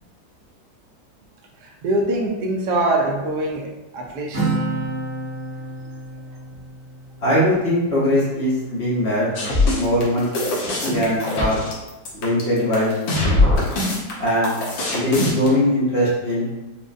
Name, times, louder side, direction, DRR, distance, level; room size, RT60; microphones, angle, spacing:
voice 1, 1.6-3.7 3.9-4.4 5.6-5.9 6.3-6.4 9.7-9.9, right 2 dB, 70° right, 0 dB, 1.1 m, -24 dB
Acoustic guitar, 4.3-8.0, right 2 dB, 40° right, 1.1 m, -29 dB
voice 2, 7.2-9.3 9.8-10.5 10.8-11.6 12.2-13.0 14.2-14.5 14.9-16.5, equal, 55° left, -7 dB, 0.7 m, -20 dB
sound 1, 9.4-15.5, left 2 dB, 90° left, 1.6 m, -21 dB
4.9 x 2.0 x 2.5 m, 1.0 s
omnidirectional pair, 2.0 m